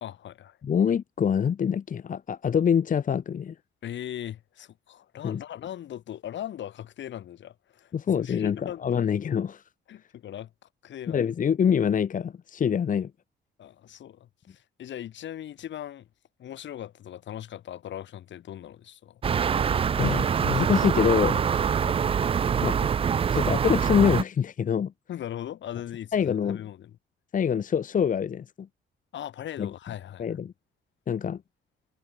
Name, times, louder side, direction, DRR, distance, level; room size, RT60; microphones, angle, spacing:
voice 1, 0.0-0.6 3.8-9.0 9.9-11.2 13.6-16.1 16.4-19.2 21.8-22.2 25.1-27.0 29.1-30.4, left 11 dB, 70° left, 2.2 m, -39 dB
voice 2, 0.6-3.5 5.2-5.4 7.9-9.6 11.1-13.1 19.9-21.5 22.6-22.9 23.3-24.9 26.1-26.6 27.3-28.7 29.6-29.7 30.2-30.5 31.1-31.4, left 7 dB, 40° left, 0.9 m, -25 dB
sound 1, 19.2-24.2, right 7 dB, 30° right, 0.3 m, -24 dB
cardioid pair, 90°, 20 cm